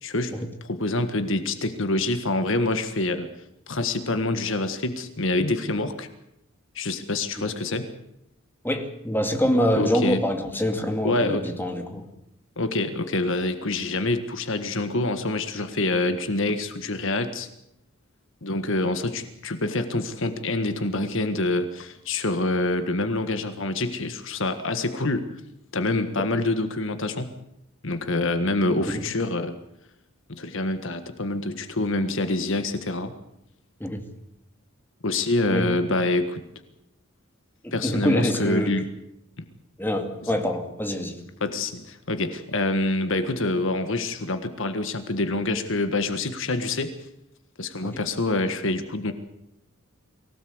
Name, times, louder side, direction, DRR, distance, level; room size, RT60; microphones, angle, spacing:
voice 1, 0.0-0.3 0.6-3.3 3.7-6.1 6.7-7.9 9.7-10.2 11.0-11.5 12.6-17.5 18.4-25.3 25.7-27.3 27.8-29.6 30.3-33.1 35.0-36.4 37.7-38.9 39.4-39.5 40.3-40.4 41.4-46.9 47.6-49.1, left 2 dB, 65° left, 9 dB, 1.6 m, -26 dB
voice 2, 8.6-12.1 28.9-29.0 33.8-34.0 35.5-35.8 37.6-38.8 39.8-41.2 47.8-48.0, equal, 10° left, 5 dB, 2.4 m, -25 dB
23.5 x 17.0 x 8.1 m, 0.82 s
head